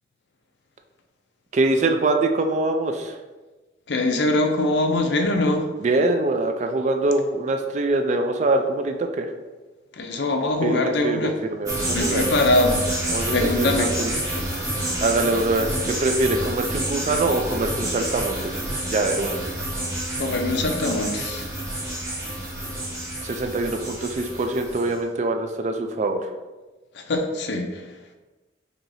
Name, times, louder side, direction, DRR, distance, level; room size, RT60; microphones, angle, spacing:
voice 1, 1.5-3.1 5.8-9.3 10.6-12.3 13.1-14.1 15.0-18.5 18.8-19.5 23.2-26.3, right 2 dB, 35° right, 5 dB, 0.3 m, -24 dB
voice 2, 3.9-5.6 10.0-11.3 11.9-12.8 13.1-13.9 20.2-21.5 27.1-27.8, left 2 dB, 60° left, 4 dB, 0.5 m, -22 dB
sound 1, 11.7-24.9, right 1 dB, 15° right, 1.0 m, -28 dB
4.6 x 2.8 x 2.6 m, 1.2 s
head